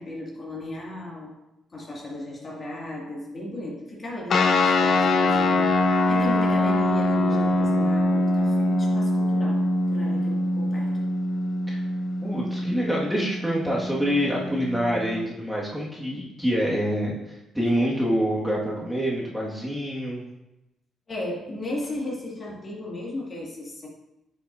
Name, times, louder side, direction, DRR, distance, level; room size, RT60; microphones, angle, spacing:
voice 1, 0.0-1.4 1.7-11.1 21.1-23.9, left 1 dB, 35° left, -3 dB, 2.2 m, -35 dB
sound 1, 4.3-15.2, left 2 dB, 55° left, 0.7 m, -23 dB
voice 2, 12.2-20.2, equal, 5° right, -5 dB, 1.8 m, -26 dB
9.4 x 6.0 x 2.7 m, 0.91 s
cardioid pair, 90°, 0 cm